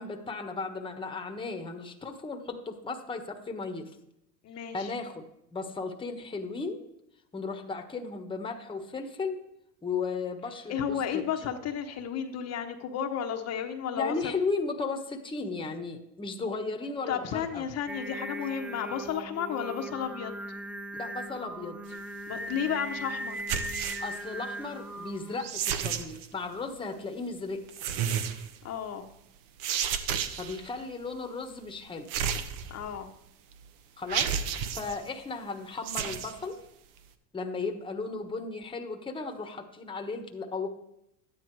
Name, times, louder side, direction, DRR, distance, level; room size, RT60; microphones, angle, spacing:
voice 1, 0.0-3.9 4.7-5.3 5.5-6.8 7.3-9.4 9.8-11.5 13.9-17.6 21.0-21.8 24.0-27.6 30.4-32.1 34.0-34.3 34.7-36.6 37.3-40.7, left 4 dB, 15° left, 4 dB, 1.3 m, -35 dB
voice 2, 4.4-4.9 10.7-14.1 17.1-20.3 22.3-23.4 28.6-29.1 32.7-33.1, left 8 dB, 40° left, 5 dB, 1.1 m, -33 dB
Singing, 17.9-25.4, right 1 dB, 5° right, 0.4 m, -39 dB
sound 1, 23.4-24.2 25.4-26.3 27.7-28.5 29.6-30.6 32.1-33.0 33.5-33.6 34.1-35.0 35.8-36.3, right 8 dB, 55° right, 1.2 m, -31 dB
12.5 x 9.7 x 4.7 m, 0.81 s
supercardioid pair, 115°, 38 cm